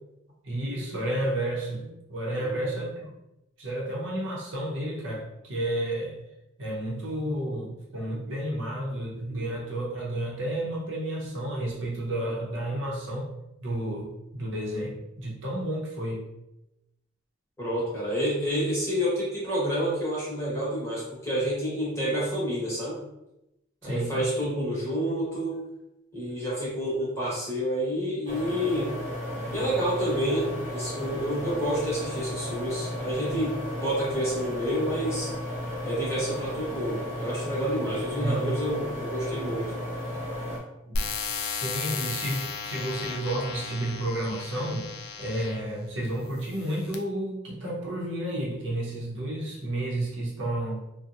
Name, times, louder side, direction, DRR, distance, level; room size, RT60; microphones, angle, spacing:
voice 1, 0.4-3.1 3.6-6.2 6.6-13.3 13.6-16.2 23.8-24.2 29.4-29.7 33.3-33.7 38.1-38.3 40.9-41.2 41.5-44.9 45.2-50.8, right 1 dB, 65° right, -3 dB, 0.7 m, -31 dB
voice 2, 2.3-2.7 17.6-23.0 23.8-25.6 26.1-28.9 29.5-35.3 35.8-39.7, equal, 15° left, -7 dB, 0.9 m, -29 dB
sound 1, 28.3-40.6, left 1 dB, 40° right, 1.1 m, -34 dB
sound 2, 40.9-45.7 46.4-46.9, left 5 dB, 55° left, 0.3 m, -34 dB
2.8 x 2.0 x 2.5 m, 0.90 s
head